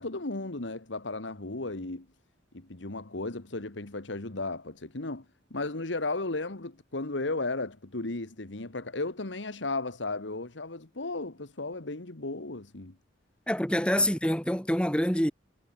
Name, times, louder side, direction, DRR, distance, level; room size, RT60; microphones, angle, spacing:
voice 1, 0.0-2.1 2.5-5.3 5.5-12.9 14.0-14.1, left 2 dB, 85° left, 1.8 m, -35 dB
voice 2, 13.5-15.3, equal, 5° left, 4.1 m, -26 dB
head